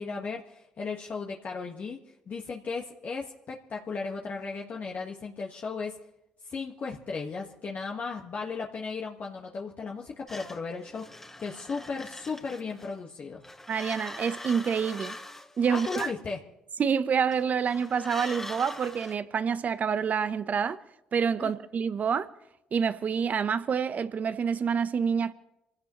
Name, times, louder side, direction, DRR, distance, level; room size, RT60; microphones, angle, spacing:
voice 1, 0.0-2.0 2.3-6.0 6.4-13.4 15.7-16.4 21.4-21.5, left 4 dB, 50° left, 1.6 m, -36 dB
sound 1, 10.3-12.9 13.4-16.2 17.3-19.1, left 1 dB, 10° left, 1.8 m, -42 dB
voice 2, 13.7-15.2 15.6-16.1 16.8-20.8 21.1-22.3 22.7-25.3, right 6 dB, 50° right, 1.0 m, -27 dB
27.5 x 16.5 x 3.2 m
hypercardioid pair, 55°, 3 cm